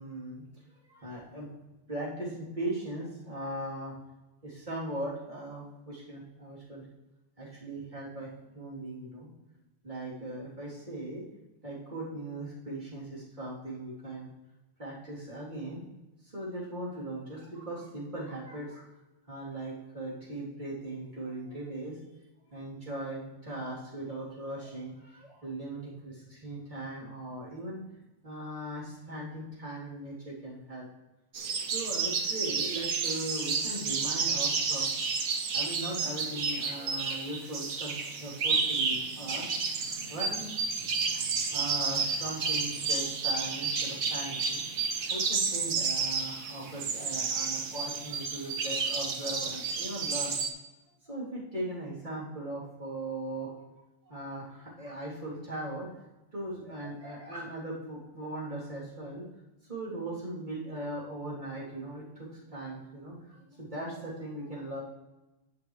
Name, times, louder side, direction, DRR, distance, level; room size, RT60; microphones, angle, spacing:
voice 1, 0.0-1.5 1.9-3.9 4.4-6.9 7.4-9.3 9.8-11.2 11.6-14.3 14.8-15.8 16.2-18.8 19.3-22.0 22.5-27.8 28.2-30.9 31.6-35.0 35.5-39.5 40.1-40.4 41.1-41.2 41.5-44.6 45.1-50.4 51.0-53.6 54.1-55.9 56.3-59.2 59.7-64.8, right 1 dB, 35° right, -7 dB, 3.6 m, -39 dB
sound 1, 31.3-50.5, right 5 dB, 90° right, 1.5 m, -31 dB
11.5 x 8.0 x 3.3 m, 1.0 s
omnidirectional pair, 1.4 m